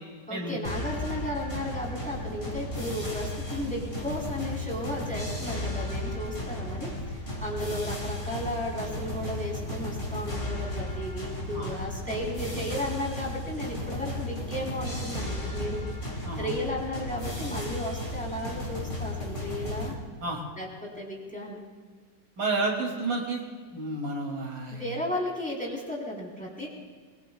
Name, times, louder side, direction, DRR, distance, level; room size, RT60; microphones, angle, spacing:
voice 1, 0.3-19.9 20.5-21.6 24.7-26.7, left 1 dB, 5° left, -3 dB, 3.8 m, -34 dB
sound 1, 0.6-19.9, left 1 dB, 25° left, 3.0 m, -34 dB
voice 2, 22.4-23.4 23.7-24.8, right 3 dB, 85° right, -1 dB, 3.3 m, -30 dB
24.0 x 21.0 x 2.3 m, 1.5 s
omnidirectional pair, 2.0 m